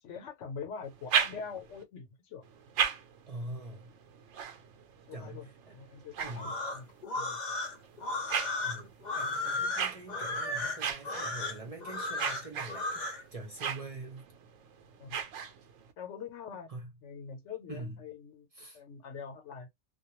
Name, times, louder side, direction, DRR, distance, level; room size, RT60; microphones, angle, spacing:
voice 1, 0.0-2.4 5.1-7.6 15.0-15.2 16.0-16.7 17.0-18.5 18.7-19.7, left 6 dB, 85° left, 1.1 m, -44 dB
sound 1, 0.8-1.8 2.4-7.0 7.6-15.9, right 7 dB, 85° right, 0.9 m, -37 dB
voice 2, 3.3-3.9 5.1-5.8 6.2-6.6 8.6-14.3 16.7-16.9 17.7-18.0 18.5-18.8, right 2 dB, 35° right, 0.7 m, -44 dB
sound 2, 6.3-13.2, left 2 dB, 45° left, 0.7 m, -35 dB
2.3 x 2.2 x 2.9 m
omnidirectional pair, 1.2 m